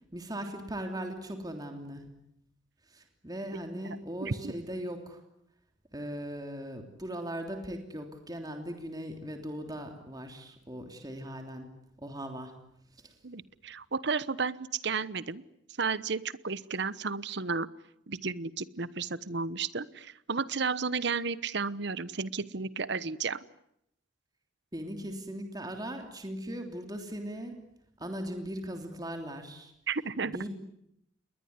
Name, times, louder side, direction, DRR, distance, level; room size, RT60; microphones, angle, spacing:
voice 1, 0.1-2.0 2.9-5.2 5.9-11.7 12.0-12.5 13.0-13.1 24.7-27.6 28.0-29.7 30.2-30.5, equal, 20° right, 4 dB, 3.2 m, -39 dB
voice 2, 3.8-4.5 13.2-15.4 15.8-17.7 18.1-23.4 29.9-30.4, right 4 dB, 60° right, 17 dB, 1.0 m, -33 dB
28.5 x 22.0 x 9.6 m, 0.76 s
head